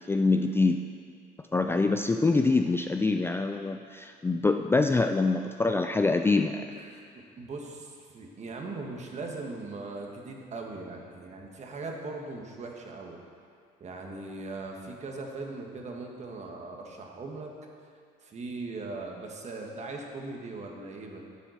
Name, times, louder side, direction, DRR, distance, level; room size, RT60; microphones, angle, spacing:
voice 1, 0.1-0.8 1.5-6.6, left 3 dB, 15° left, 6 dB, 0.4 m, -25 dB
voice 2, 7.4-13.2 13.8-17.5 18.2-21.2, right 3 dB, 45° right, 1 dB, 1.7 m, -39 dB
10.0 x 7.8 x 6.4 m, 2.2 s
cardioid pair, 110°, 17 cm